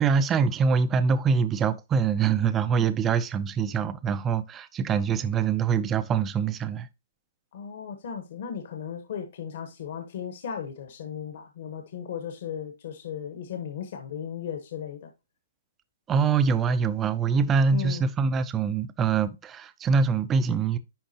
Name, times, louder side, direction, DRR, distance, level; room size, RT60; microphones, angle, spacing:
voice 1, 0.0-6.9 16.1-20.8, right 6 dB, 10° right, 0.4 m, -24 dB
voice 2, 7.5-15.1 17.7-18.1, left 8 dB, 45° left, 1.0 m, -36 dB
10.0 x 3.7 x 2.8 m
hypercardioid pair, 175°, 0 cm